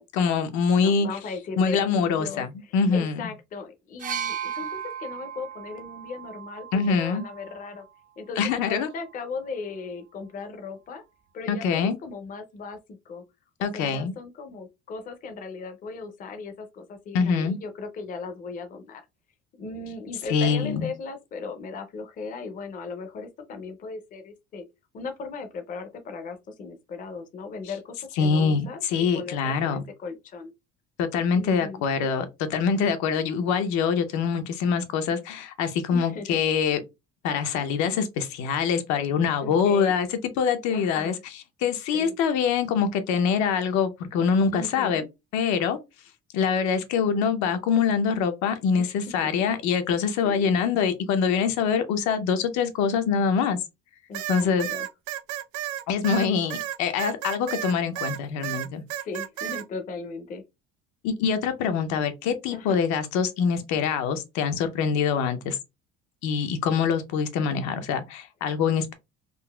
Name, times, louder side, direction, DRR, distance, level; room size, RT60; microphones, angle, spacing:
voice 1, 0.1-1.1 1.6-3.2 6.7-7.2 8.4-8.9 11.5-12.0 13.6-14.1 17.1-17.6 20.3-20.9 28.2-29.8 31.0-36.8 37.2-40.1 40.4-45.0 45.3-45.8 46.3-53.6 54.3-54.7 55.9-58.8 61.0-65.6 66.2-68.9, left 6 dB, 70° left, 0.6 m, -24 dB
voice 2, 0.8-7.9 8.2-11.0 11.3-13.2 13.6-19.0 19.6-24.6 24.9-28.8 29.1-30.5 31.4-31.8 35.9-36.4 39.4-39.9 40.7-41.2 41.9-42.1 44.5-45.1 48.8-49.0 50.2-50.5 54.1-54.9 59.0-60.4 62.5-62.8, left 4 dB, 30° left, 0.5 m, -37 dB
sound 1, 4.0-7.8 8.8-9.0, right 8 dB, 30° right, 0.4 m, -36 dB
sound 2, 54.1-58.2 58.4-59.6, right 13 dB, 90° right, 0.5 m, -32 dB
3.8 x 2.4 x 2.2 m
cardioid pair, 155°, 29 cm